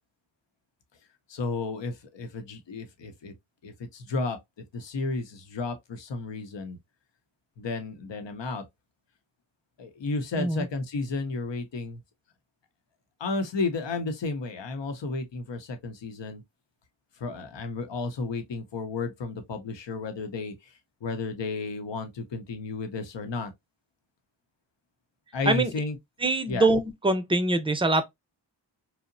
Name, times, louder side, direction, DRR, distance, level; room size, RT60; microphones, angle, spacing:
voice 1, 1.3-3.3 3.6-4.4 4.7-6.8 7.6-8.6 9.8-12.0 13.2-16.4 17.2-23.5 25.3-26.0 26.5-26.7, left 3 dB, 70° left, 0.8 m, -32 dB
voice 2, 26.2-28.1, right 2 dB, 10° right, 0.5 m, -24 dB
2.8 x 2.1 x 2.5 m
cardioid pair, 40°, 46 cm